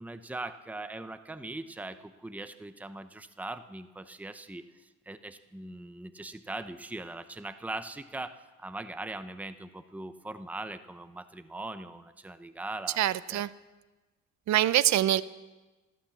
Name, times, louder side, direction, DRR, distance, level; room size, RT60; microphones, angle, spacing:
voice 1, 0.0-13.0 13.3-13.4, right 2 dB, 5° right, 10 dB, 0.8 m, -40 dB
voice 2, 13.0-13.5 14.5-15.2, right 13 dB, 65° right, 17 dB, 0.7 m, -24 dB
14.5 x 13.0 x 7.3 m, 1.2 s
cardioid pair, 90°, 30 cm